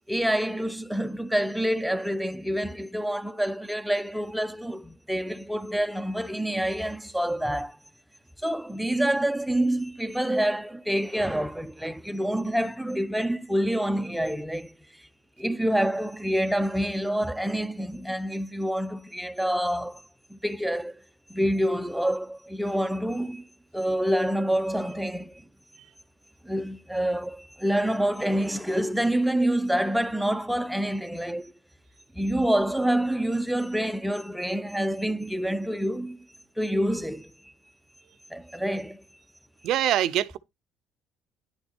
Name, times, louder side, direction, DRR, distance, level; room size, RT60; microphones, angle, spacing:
voice 1, 0.1-7.8 8.4-15.0 15.4-20.0 20.3-21.0 21.3-23.4 23.7-25.4 26.4-31.5 32.1-36.2 36.6-37.3 38.3-39.0, right 1 dB, 5° right, 0.7 m, -27 dB
voice 2, 39.6-40.4, right 12 dB, 70° right, 0.6 m, -24 dB
10.5 x 4.4 x 4.3 m
supercardioid pair, 75°, 0 cm